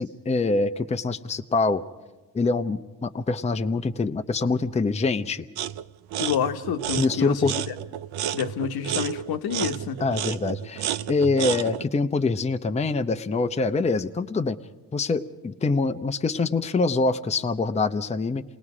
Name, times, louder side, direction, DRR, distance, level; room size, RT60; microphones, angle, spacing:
voice 1, 0.0-1.8 2.3-5.4 6.9-7.5 10.0-14.6 14.9-18.4, left 3 dB, 15° left, 7 dB, 0.7 m, -25 dB
sound 1, 5.6-5.8 6.1-11.9, right 11 dB, 75° right, 0.7 m, -31 dB
voice 2, 6.2-7.7 8.3-10.0, left 8 dB, 70° left, 7 dB, 1.2 m, -28 dB
28.0 x 19.0 x 4.9 m, 1.2 s
cardioid pair, 90°, 39 cm